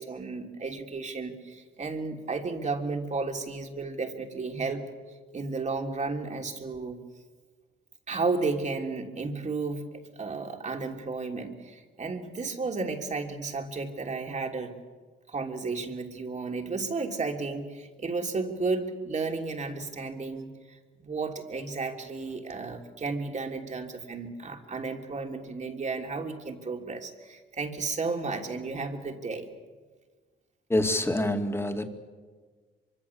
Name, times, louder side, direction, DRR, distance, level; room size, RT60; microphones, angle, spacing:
voice 1, 0.0-4.8 5.3-7.0 8.1-14.7 15.3-29.5, right 4 dB, 35° right, 3.2 m, -33 dB
voice 2, 30.7-31.9, left 1 dB, 10° left, 2.6 m, -26 dB
24.5 x 24.5 x 7.2 m
cardioid pair, 90°, 20 cm